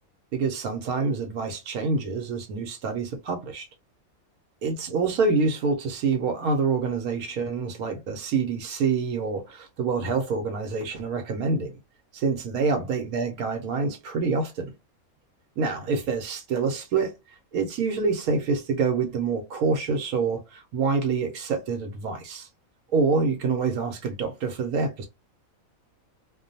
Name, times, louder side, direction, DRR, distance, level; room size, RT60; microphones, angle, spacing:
voice 1, 0.3-3.7 4.6-11.8 12.1-14.7 15.6-17.1 17.5-22.5 22.9-25.1, right 4 dB, 80° right, 1.1 m, -26 dB
2.4 x 2.2 x 2.6 m
omnidirectional pair, 1.5 m